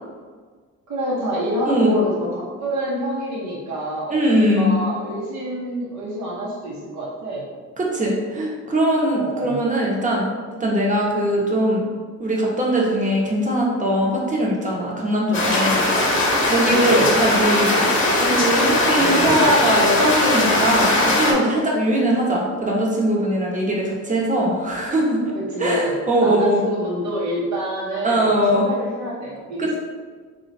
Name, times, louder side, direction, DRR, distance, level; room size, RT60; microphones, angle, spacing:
voice 1, 0.9-7.5 9.1-9.6 16.6-17.1 18.9-19.5 25.3-29.7, equal, 65° right, -5 dB, 0.9 m, -27 dB
voice 2, 1.6-2.0 4.1-4.7 7.8-10.3 10.6-11.8 12.2-15.9 16.4-17.9 18.2-25.3 25.6-26.6 28.0-28.7 29.6-29.7, right 1 dB, 25° right, -3 dB, 1.0 m, -21 dB
sound 1, 15.3-21.3, left 1 dB, 40° left, 0.8 m, -19 dB
3.0 x 2.4 x 4.0 m, 1.6 s
cardioid pair, 90°, 30 cm